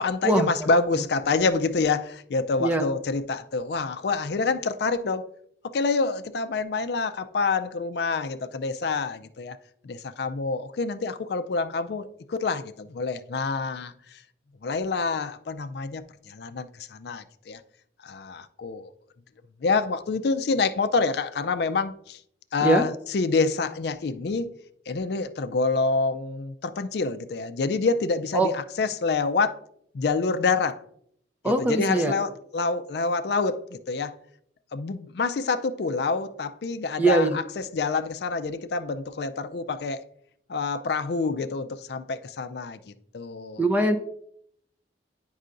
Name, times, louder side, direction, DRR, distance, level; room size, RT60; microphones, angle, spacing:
voice 1, 0.0-5.3 5.6-9.6 9.8-14.2 14.6-17.6 18.0-18.9 19.6-22.2 22.5-24.5 24.9-29.6 29.9-30.8 31.4-34.1 34.7-40.0 40.5-43.6, left 4 dB, 60° left, 0.4 m, -27 dB
voice 2, 31.4-32.1 37.0-37.4 43.6-44.0, right 2 dB, 10° right, 0.5 m, -21 dB
9.4 x 5.4 x 2.5 m
head